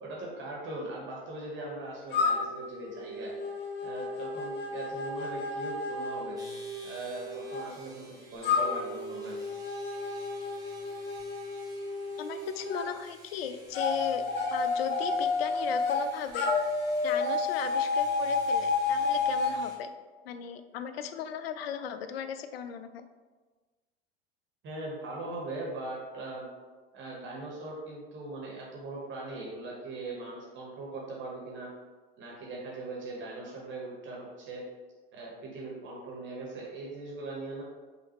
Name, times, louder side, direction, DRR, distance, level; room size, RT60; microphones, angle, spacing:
voice 1, 0.0-3.3 3.8-6.4 6.8-9.4 24.6-26.5 26.9-31.7 32.2-34.6 35.1-37.6, right 2 dB, 35° right, -3 dB, 1.3 m, -40 dB
sound 1, 2.1-7.6 8.4-12.9 13.7-16.0 16.3-19.6, left 4 dB, 35° left, 0.8 m, -31 dB
sound 2, 6.3-19.8, right 2 dB, 10° right, 1.0 m, -54 dB
voice 2, 12.2-14.3 14.5-16.5 17.0-19.9 20.2-23.1, left 8 dB, 70° left, 9 dB, 0.5 m, -36 dB
5.5 x 2.6 x 3.1 m, 1.3 s
figure-of-eight pair, 75°, 31 cm